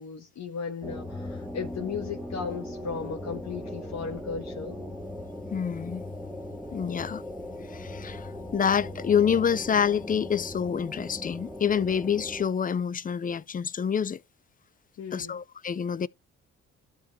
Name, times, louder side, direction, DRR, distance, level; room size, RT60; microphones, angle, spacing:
voice 1, 0.0-4.8 15.0-15.4, left 5 dB, 65° left, 1.7 m, -36 dB
sound 1, 0.8-12.5, left 1 dB, ahead, 1.8 m, -39 dB
voice 2, 5.5-6.0 6.7-7.2 7.7-14.2 15.1-16.1, left 7 dB, 30° left, 0.5 m, -27 dB
12.0 x 5.0 x 3.1 m
cardioid pair, 90°, 30 cm